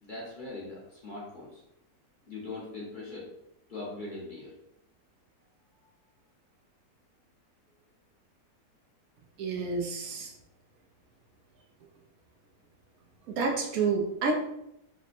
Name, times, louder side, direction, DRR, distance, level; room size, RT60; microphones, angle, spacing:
voice 1, 0.0-1.6 2.2-3.3 3.7-4.5 5.7-5.8, left 2 dB, 40° left, -6 dB, 0.8 m, -41 dB
voice 2, 9.4-10.3 13.3-14.3, right 4 dB, 75° right, 2 dB, 1.0 m, -29 dB
3.3 x 2.1 x 4.1 m, 0.82 s
omnidirectional pair, 1.6 m